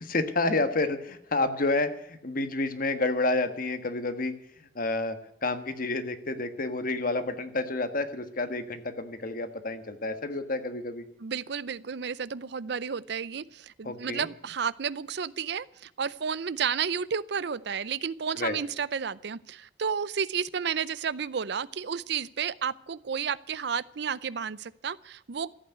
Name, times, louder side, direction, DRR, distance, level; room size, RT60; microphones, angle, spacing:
voice 1, 0.0-4.3 4.6-11.0 13.8-14.3 18.3-18.6, left 2 dB, 50° left, 9 dB, 1.5 m, -29 dB
voice 2, 11.2-25.5, right 7 dB, 60° right, 19 dB, 0.5 m, -32 dB
14.5 x 8.7 x 9.3 m, 0.75 s
head